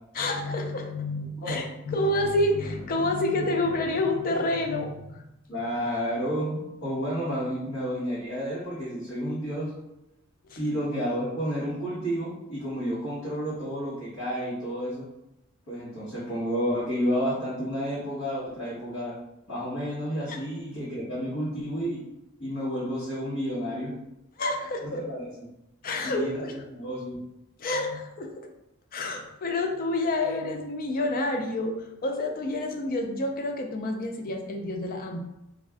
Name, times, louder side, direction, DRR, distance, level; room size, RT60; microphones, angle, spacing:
voice 1, 0.1-5.2 10.5-10.6 20.3-20.4 24.4-25.0 25.8-26.6 27.6-28.3 28.9-35.2, left 2 dB, 45° left, 3 dB, 0.4 m, -28 dB
voice 2, 5.5-9.7 10.6-15.0 15.7-19.1 19.5-22.0 22.4-23.9 24.8-25.5 26.0-27.2, equal, 85° left, -11 dB, 1.2 m, -31 dB
2.5 x 2.3 x 3.3 m, 0.88 s
head